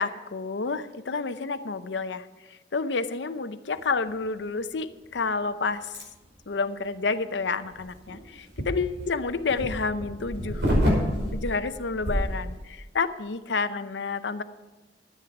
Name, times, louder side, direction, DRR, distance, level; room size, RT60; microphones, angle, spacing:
voice 1, 0.0-2.3 2.7-6.0 6.5-10.7 11.3-14.4, left 4 dB, 75° left, 10 dB, 0.7 m, -29 dB
sound 1, 5.9-6.0 7.6-12.6, equal, 80° right, 5.5 m, -28 dB
13.5 x 9.4 x 5.9 m, 1.2 s
head